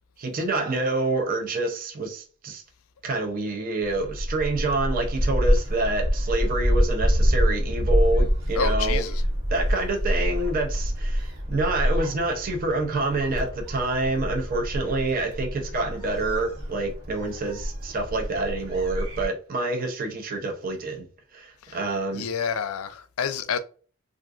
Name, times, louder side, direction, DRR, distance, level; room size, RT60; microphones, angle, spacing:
voice 1, 0.2-2.6 3.0-9.0 9.5-22.3, right 2 dB, 40° right, 0.5 m, -27 dB
Gull seagull, 3.8-19.3, equal, 90° right, 1.3 m, -26 dB
voice 2, 8.5-9.2 21.6-21.8 22.1-23.6, left 7 dB, 85° left, 0.4 m, -29 dB
3.6 x 2.4 x 2.4 m
head